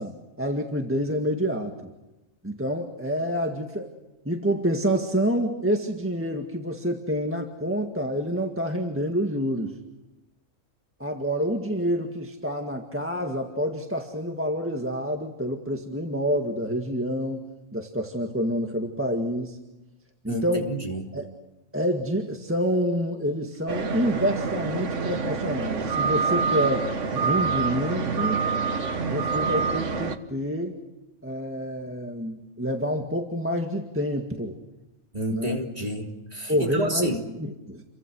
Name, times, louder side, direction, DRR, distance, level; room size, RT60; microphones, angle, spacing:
voice 1, 0.0-1.9 2.4-3.9 4.3-9.7 11.0-17.4 17.7-19.6 20.2-20.7 21.1-21.3 21.7-28.4 29.1-30.8 31.2-34.6 35.3-35.6 36.5-37.8, equal, 10° right, 2 dB, 1.9 m, -28 dB
voice 2, 20.3-21.1 35.1-37.2, equal, 30° right, 1 dB, 3.6 m, -29 dB
sound 1, 23.7-30.2, right 4 dB, 65° right, 1.7 m, -26 dB
29.5 x 24.0 x 6.3 m, 1.0 s
omnidirectional pair, 1.4 m